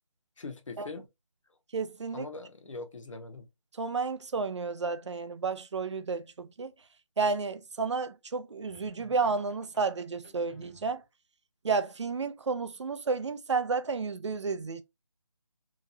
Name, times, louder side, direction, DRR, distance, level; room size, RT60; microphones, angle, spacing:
voice 1, 0.4-1.1 2.1-3.5, left 3 dB, 75° left, 0.8 m, -42 dB
voice 2, 1.7-2.3 3.8-6.7 7.2-11.0 11.6-14.8, right 4 dB, 60° right, 0.4 m, -31 dB
sound 1, 8.7-11.0, left 1 dB, ahead, 0.5 m, -56 dB
2.9 x 2.3 x 2.6 m
figure-of-eight pair, 170°, 17 cm